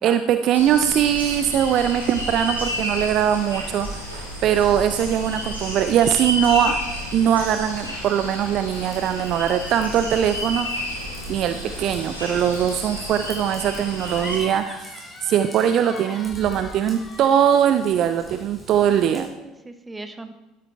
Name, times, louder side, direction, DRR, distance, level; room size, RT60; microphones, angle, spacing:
voice 1, 0.0-6.8 7.1-10.7 11.3-19.3, right 9 dB, 45° right, 10 dB, 0.5 m, -21 dB
sound 1, 0.5-14.4, equal, 90° left, 2.4 m, -31 dB
Raindrop / Vehicle horn car horn honking / Trickle dribble, 8.7-19.3, equal, ahead, 4.4 m, -46 dB
voice 2, 12.7-13.0 19.1-20.3, right 2 dB, 15° right, 8 dB, 1.1 m, -40 dB
sound 2, 14.0-18.4, left 3 dB, 30° left, 1.4 m, -41 dB
12.0 x 10.5 x 3.3 m, 1.0 s
figure-of-eight pair, 60°, 0 cm